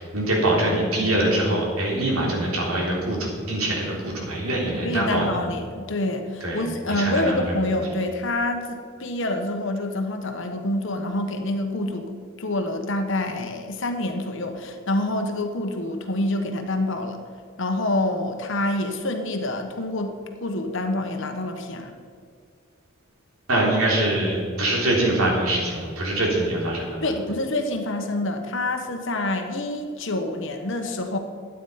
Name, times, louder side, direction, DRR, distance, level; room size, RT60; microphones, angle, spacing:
voice 1, 0.0-5.4 6.4-6.6 6.9-7.6 23.5-27.1, right 1 dB, 85° right, -2 dB, 3.5 m, -24 dB
voice 2, 4.8-12.1 12.4-17.2 17.6-20.2 20.4-21.9 27.0-31.2, left 1 dB, 60° left, 5 dB, 1.2 m, -27 dB
12.5 x 9.2 x 5.7 m, 2.2 s
head